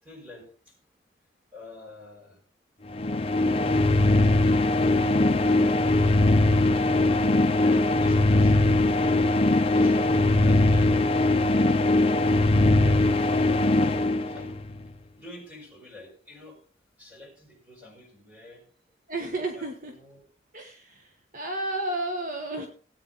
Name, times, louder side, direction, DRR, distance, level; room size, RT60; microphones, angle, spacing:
voice 1, 0.0-0.7 1.5-2.4 7.6-11.2 13.7-14.8 15.1-16.6 17.0-18.6 19.5-20.2, left 2 dB, 10° right, 0 dB, 6.3 m, -47 dB
sound 1, 2.9-14.8, left 2 dB, 30° left, 0.7 m, -21 dB
voice 2, 12.5-13.0 19.1-19.9 20.5-22.7, right 2 dB, 45° right, 3 dB, 1.3 m, -33 dB
17.5 x 9.0 x 4.0 m, 0.42 s
head